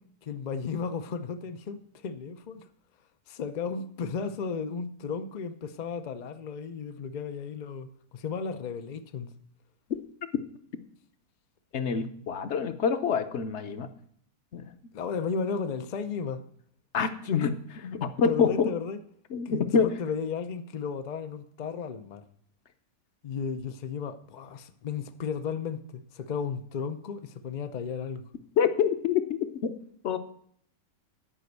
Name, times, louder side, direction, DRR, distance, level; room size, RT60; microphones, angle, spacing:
voice 1, 0.2-2.7 3.3-9.3 14.9-16.4 18.2-19.0 19.4-22.2 23.2-28.2, left 5 dB, 75° left, 0.4 m, -34 dB
voice 2, 11.7-13.9 14.5-14.7 16.9-18.5 19.3-19.9 28.6-29.2 29.6-29.7 30.0-30.2, left 6 dB, 55° left, 0.9 m, -26 dB
10.0 x 5.2 x 7.9 m
omnidirectional pair, 1.6 m